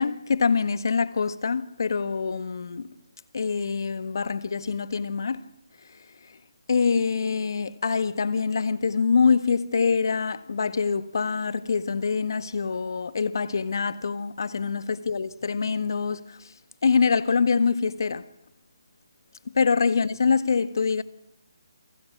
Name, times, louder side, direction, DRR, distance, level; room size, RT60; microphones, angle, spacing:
voice 1, 0.0-2.9 3.3-5.5 6.7-16.4 16.8-18.3 19.5-21.0, left 5 dB, 65° left, 1.7 m, -25 dB
29.0 x 27.0 x 6.2 m
figure-of-eight pair, 150°, 2 cm